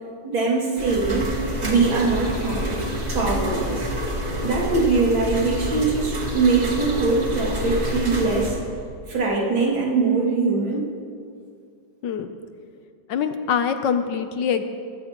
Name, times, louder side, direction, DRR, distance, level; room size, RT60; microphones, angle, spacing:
voice 1, 0.2-2.8 3.1-3.9 4.4-8.6 9.1-10.9, right 4 dB, 75° right, -3 dB, 3.2 m, -22 dB
sound 1, 0.8-8.5, equal, 35° right, 2.2 m, -27 dB
voice 2, 13.1-14.6, left 7 dB, 70° left, 9 dB, 1.3 m, -24 dB
22.0 x 15.5 x 3.0 m, 2.3 s
omnidirectional pair, 2.2 m